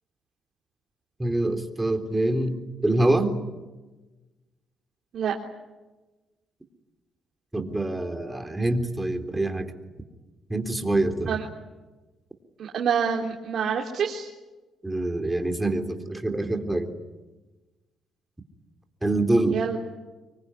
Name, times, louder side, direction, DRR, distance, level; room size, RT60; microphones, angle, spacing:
voice 1, 1.2-2.6 2.8-3.3 7.5-9.7 10.5-11.4 14.8-16.9 19.0-19.6, right 2 dB, 10° right, 5 dB, 3.7 m, -25 dB
voice 2, 12.6-14.3 19.5-19.8, right 7 dB, 65° right, 0 dB, 3.4 m, -26 dB
26.0 x 23.5 x 9.9 m, 1.2 s
cardioid pair, 90°, 0 cm